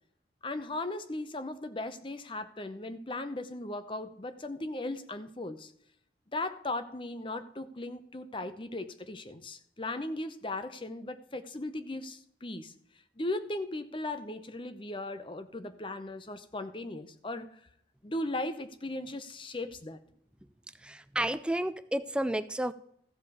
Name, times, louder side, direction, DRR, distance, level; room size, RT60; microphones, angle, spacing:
voice 1, 0.4-5.7 6.3-12.7 13.2-17.5 18.0-20.0, left 2 dB, 30° left, 0.7 m, -37 dB
voice 2, 20.8-22.7, right 1 dB, 5° right, 0.4 m, -31 dB
14.5 x 5.1 x 7.0 m
head